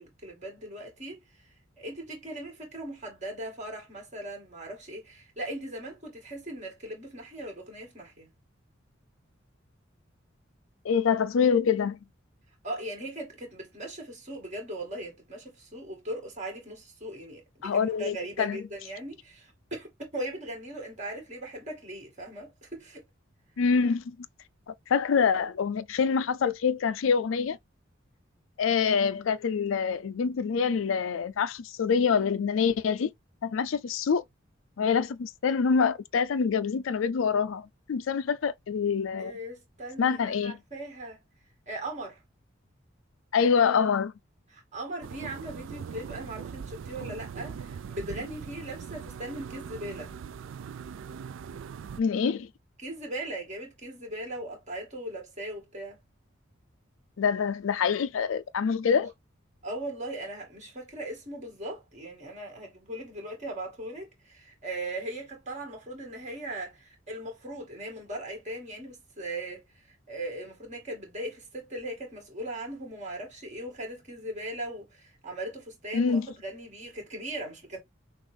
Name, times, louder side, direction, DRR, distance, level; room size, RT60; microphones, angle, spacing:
voice 1, 0.0-8.3 12.6-23.0 39.2-41.2 41.7-42.2 44.5-50.1 52.8-56.0 59.6-77.8, right 1 dB, 35° right, 2.3 m, -39 dB
voice 2, 10.8-12.0 17.6-18.6 23.6-24.2 24.9-27.6 28.6-33.1 33.4-34.2 34.8-39.3 40.0-40.6 43.3-44.1 52.0-52.5 57.2-59.1 75.9-76.3, left 6 dB, 80° left, 0.4 m, -26 dB
sound 1, 45.0-52.0, right 6 dB, 80° right, 0.4 m, -41 dB
6.1 x 2.5 x 3.4 m
head